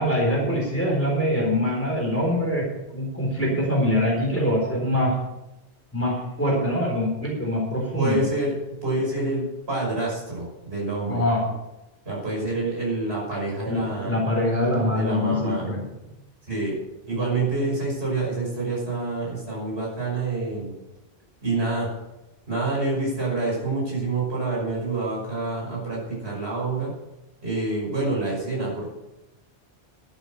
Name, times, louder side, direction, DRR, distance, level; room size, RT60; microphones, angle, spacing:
voice 1, 0.0-5.2 5.9-8.2 11.1-11.4 13.7-15.8, left 1 dB, 10° left, -2 dB, 4.0 m, -24 dB
voice 2, 8.0-11.2 12.1-14.2 14.9-15.7 16.5-16.8 17.1-20.7 21.4-21.9 22.5-26.9 27.4-28.9, right 2 dB, 70° right, -4 dB, 5.9 m, -27 dB
11.5 x 8.7 x 6.5 m, 0.97 s
omnidirectional pair, 1.1 m